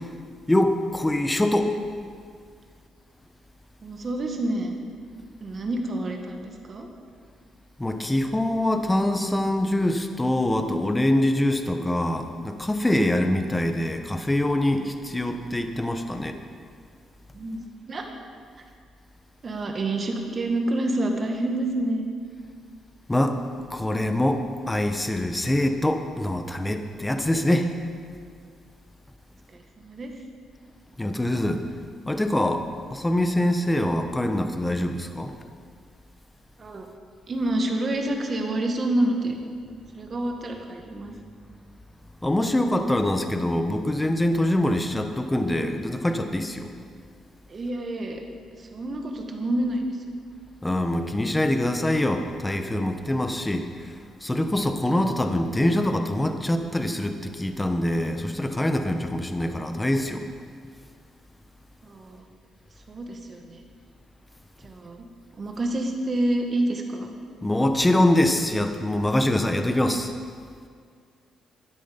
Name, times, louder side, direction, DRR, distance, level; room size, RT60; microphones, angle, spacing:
voice 1, 0.5-1.7 7.8-16.4 23.1-23.4 23.7-27.7 31.0-31.6 32.1-32.6 32.9-35.3 42.2-46.7 50.6-53.7 54.2-60.3 67.4-70.1, left 1 dB, 10° left, 6 dB, 1.0 m, -24 dB
voice 2, 3.8-4.7 5.4-6.9 17.3-18.1 19.4-22.2 29.5-30.1 36.6-36.9 37.3-39.4 39.9-41.1 47.5-48.2 48.6-49.9 61.8-62.2 62.9-63.6 64.6-65.1 65.4-67.1, right 1 dB, 40° right, 3 dB, 1.8 m, -28 dB
13.5 x 10.0 x 5.3 m, 2.1 s
cardioid pair, 90°, 0 cm